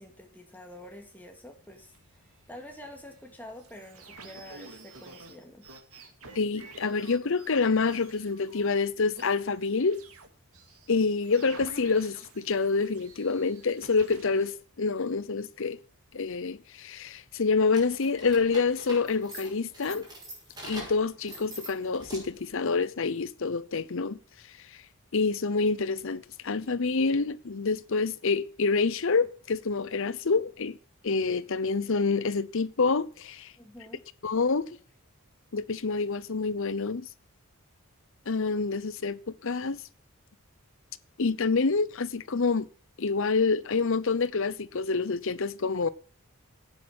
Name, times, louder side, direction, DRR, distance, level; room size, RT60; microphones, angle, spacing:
voice 1, 0.0-1.9 2.5-5.7 33.6-34.0, left 1 dB, 10° left, 2.6 m, -47 dB
sound 1, 1.5-7.6 7.8-8.8 9.2-10.9 11.2-14.5, right 3 dB, 75° right, 2.4 m, -50 dB
voice 2, 6.4-10.0 10.9-15.8 16.1-20.1 20.6-24.2 25.1-30.8 31.0-33.5 34.2-34.7 35.5-37.1 38.3-39.8 41.2-42.7 43.0-45.9, left 4 dB, 60° left, 0.7 m, -27 dB
sound 2, 17.7-22.5, right 1 dB, 20° right, 5.9 m, -44 dB
10.5 x 8.7 x 6.1 m
head